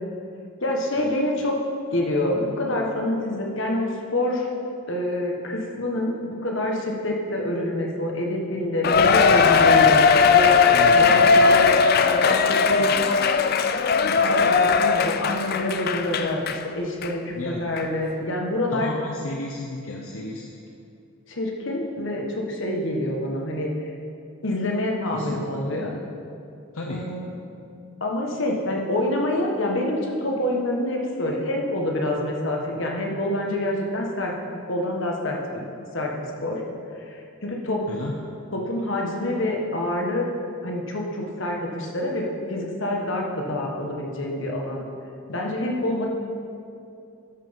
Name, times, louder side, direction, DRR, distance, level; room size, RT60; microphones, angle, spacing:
voice 1, 0.6-1.6 1.9-4.5 4.9-10.7 10.9-11.7 12.1-12.9 14.0-18.9 21.3-23.7 24.4-25.9 26.9-27.3 28.0-34.3 34.7-35.6 35.9-36.1 36.4-36.6 37.0-37.8 38.5-40.3 40.6-44.8 45.3-46.1, left 1 dB, 60° left, 0 dB, 1.4 m, -26 dB
Cheering, 8.8-16.6 17.0-17.1 17.8-17.9, left 5 dB, 45° left, 0.4 m, -18 dB
voice 2, 10.7-11.2 17.3-17.7 18.7-20.6 25.1-26.1 26.7-27.1 37.9-38.2, left 2 dB, 80° left, 0 dB, 0.8 m, -34 dB
13.0 x 6.0 x 5.2 m, 2.5 s
head